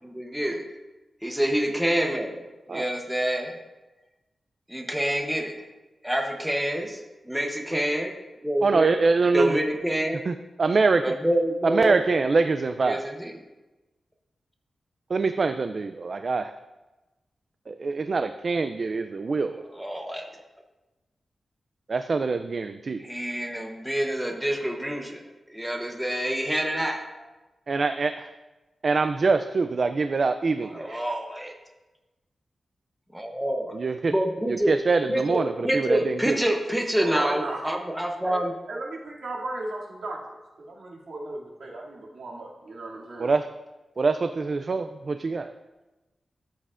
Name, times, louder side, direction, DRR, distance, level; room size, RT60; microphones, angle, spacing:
voice 1, 0.0-0.6 1.2-3.6 4.7-5.6 6.0-7.0 7.3-8.1 8.4-9.0 9.3-10.2 11.0-12.0 12.8-13.3 19.7-20.2 23.0-25.2 25.5-27.0 30.7-31.5 33.1-33.8 34.1-34.7 35.1-38.5, right 1 dB, 5° right, 1 dB, 0.9 m, -27 dB
voice 2, 8.6-9.6 10.3-11.1 11.6-13.1 15.1-16.5 17.7-19.6 21.9-23.1 27.7-28.3 28.8-31.0 33.7-34.1 34.5-36.3 43.2-43.4 44.0-45.5, right 4 dB, 45° right, 8 dB, 0.3 m, -24 dB
voice 3, 37.0-37.6 38.2-38.4 38.7-43.3, right 2 dB, 75° right, -5 dB, 2.4 m, -36 dB
13.0 x 7.7 x 2.5 m, 1.1 s
wide cardioid pair, 130°, 0 cm